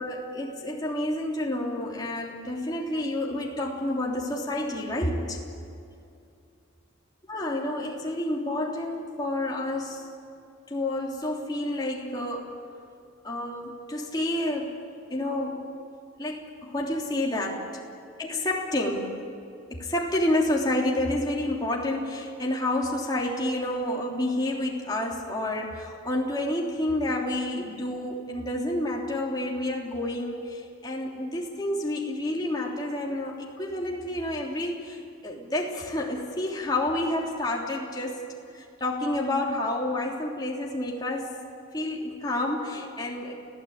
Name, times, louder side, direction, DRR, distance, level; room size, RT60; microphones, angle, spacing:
voice 1, 0.0-5.4 7.3-10.1 10.7-12.6 13.2-14.8 15.1-15.7 16.2-17.7 18.2-19.1 19.7-38.2 38.5-41.3 41.7-43.3, left 1 dB, 20° left, -2 dB, 3.3 m, -29 dB
29.5 x 16.5 x 8.8 m, 2.5 s
head